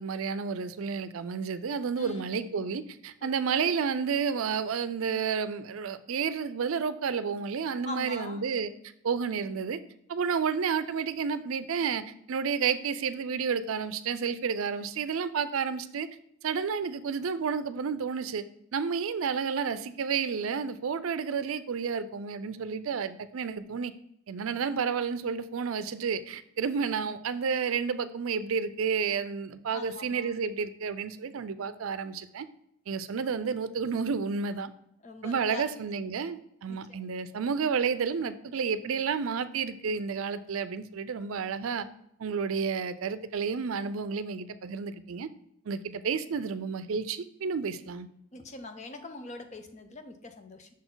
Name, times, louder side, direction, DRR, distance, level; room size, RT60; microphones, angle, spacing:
voice 1, 0.0-8.7 9.0-9.8 10.1-16.1 16.4-18.4 18.7-23.9 24.3-32.5 32.9-34.7 35.2-41.9 42.2-45.3 45.7-48.1, right 6 dB, 80° right, 13 dB, 0.4 m, -31 dB
voice 2, 7.8-8.4 29.7-30.3 35.0-35.6 36.7-37.0 48.3-50.7, left 2 dB, 35° left, 7 dB, 0.6 m, -42 dB
6.2 x 4.1 x 3.8 m, 0.74 s
head